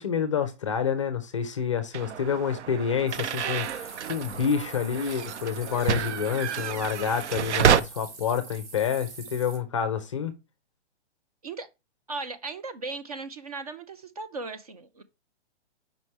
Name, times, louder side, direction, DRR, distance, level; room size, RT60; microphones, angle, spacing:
voice 1, 0.0-10.3, left 7 dB, 25° left, 0.5 m, -28 dB
sound 1, 1.9-7.8, right 8 dB, 75° right, 0.7 m, -28 dB
sound 2, 3.1-9.6, right 4 dB, 55° right, 1.9 m, -45 dB
voice 2, 12.1-15.0, right 3 dB, 35° right, 0.5 m, -37 dB
5.3 x 3.2 x 5.6 m
hypercardioid pair, 170°, 35 cm